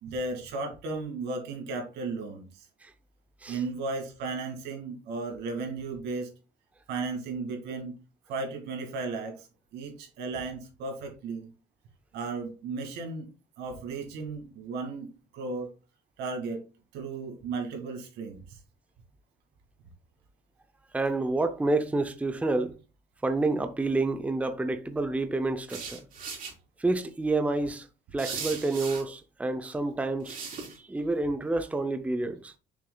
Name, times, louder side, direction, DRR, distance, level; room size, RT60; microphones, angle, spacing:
voice 1, 0.0-2.7 3.5-6.3 6.9-7.9 8.3-9.5 9.7-11.5 12.1-13.3 13.6-15.1 15.3-15.7 16.2-16.6 16.9-18.6, right 3 dB, 85° right, 2.2 m, -35 dB
voice 2, 20.9-22.8 23.2-26.0 26.8-27.9 28.1-30.4 30.8-32.5, right 2 dB, 10° right, 0.6 m, -28 dB
sound 1, 25.7-26.5 28.2-29.0 30.2-30.8, right 5 dB, 55° right, 3.7 m, -38 dB
6.8 x 6.4 x 2.3 m
cardioid pair, 110°, 17 cm